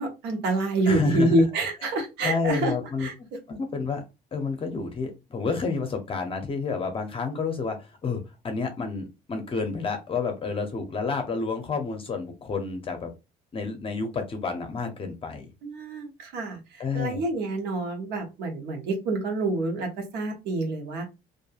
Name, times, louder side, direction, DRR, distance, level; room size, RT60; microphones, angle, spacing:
voice 1, 0.0-2.7 3.0-3.1 15.6-21.1, right 2 dB, 85° right, 3 dB, 1.0 m, -27 dB
voice 2, 0.9-1.4 1.8-1.9 2.2-3.1 3.5-4.0 4.3-13.1 13.5-15.5 16.8-17.2, left 4 dB, 30° left, 5 dB, 0.6 m, -30 dB
2.6 x 2.5 x 2.4 m, 0.26 s
cardioid pair, 110°, 17 cm